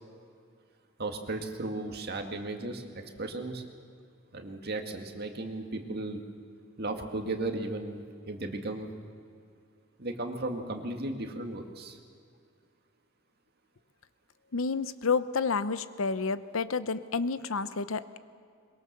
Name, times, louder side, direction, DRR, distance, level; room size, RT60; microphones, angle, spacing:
voice 1, 1.0-3.6 4.3-6.2 6.8-8.9 10.0-12.0, right 2 dB, 50° right, 4 dB, 2.1 m, -35 dB
voice 2, 14.5-18.2, left 4 dB, 80° left, 14 dB, 0.8 m, -30 dB
22.5 x 22.0 x 6.8 m, 2.3 s
head